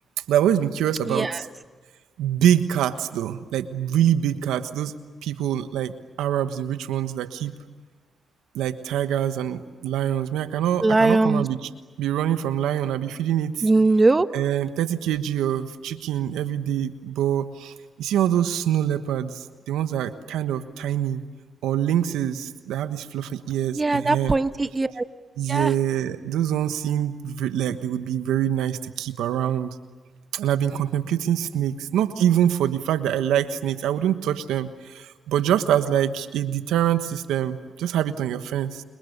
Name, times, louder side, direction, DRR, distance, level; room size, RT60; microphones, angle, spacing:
voice 1, 0.3-1.5 2.2-5.0 5.2-7.6 8.5-11.7 12.0-13.7 14.3-21.2 21.6-24.4 25.4-29.7 30.3-38.8, right 10 dB, 85° right, 10 dB, 1.3 m, -25 dB
voice 2, 1.1-1.4 10.8-11.5 13.6-14.3 23.7-25.0 25.5-25.7, right 3 dB, 30° right, 11 dB, 1.2 m, -20 dB
30.0 x 27.5 x 6.8 m, 1.4 s
supercardioid pair, 55°, 0 cm